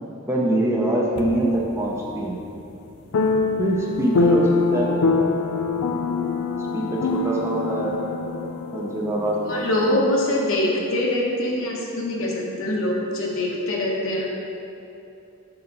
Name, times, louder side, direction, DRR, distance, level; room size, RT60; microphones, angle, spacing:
voice 1, 0.3-2.4 3.6-4.9 6.7-8.0 8.7-10.1, right 1 dB, 10° right, -3 dB, 0.6 m, -24 dB
sound 1, 1.2-1.6 3.1-9.9, left 3 dB, 80° left, 0.4 m, -24 dB
voice 2, 9.5-14.3, left 1 dB, 65° left, -2 dB, 1.0 m, -24 dB
5.8 x 5.7 x 3.9 m, 2.8 s
head